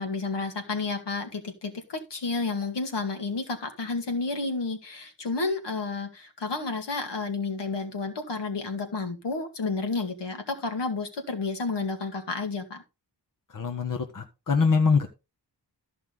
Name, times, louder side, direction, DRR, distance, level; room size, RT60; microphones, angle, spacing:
voice 1, 0.0-12.8, left 3 dB, 75° left, 6 dB, 2.2 m, -31 dB
voice 2, 13.5-15.1, left 5 dB, 45° left, 5 dB, 1.6 m, -24 dB
13.5 x 5.8 x 3.9 m, 0.26 s
wide cardioid pair, 130°, 43 cm